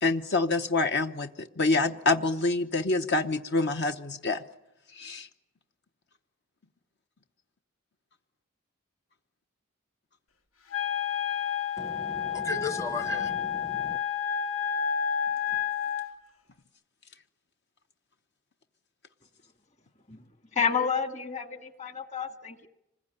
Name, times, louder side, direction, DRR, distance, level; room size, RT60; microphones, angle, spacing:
voice 1, 0.0-4.4 4.9-5.3, left 3 dB, 55° left, 7 dB, 1.0 m, -26 dB
Wind instrument woodwind instrument, 10.7-16.1, left 8 dB, 90° left, 2.6 m, -30 dB
voice 2, 11.8-14.0, left 2 dB, 15° left, 9 dB, 0.9 m, -35 dB
voice 3, 20.5-22.7, left 6 dB, 35° left, 8 dB, 2.0 m, -30 dB
26.5 x 21.0 x 9.9 m, 0.86 s
head